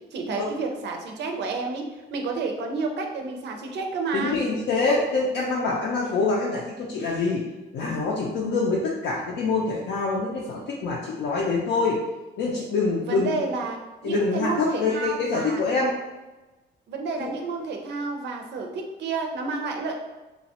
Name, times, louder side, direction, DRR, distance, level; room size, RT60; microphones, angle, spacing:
voice 1, 0.1-1.8 2.1-4.4 13.0-15.6 16.9-20.0, right 3 dB, 65° right, 2 dB, 0.5 m, -30 dB
voice 2, 4.1-7.5 7.7-12.0 12.4-13.3 14.0-15.9 17.2-17.3, left 3 dB, 75° left, -3 dB, 0.5 m, -25 dB
2.9 x 2.2 x 2.8 m, 1.1 s
cardioid pair, 125°, 19 cm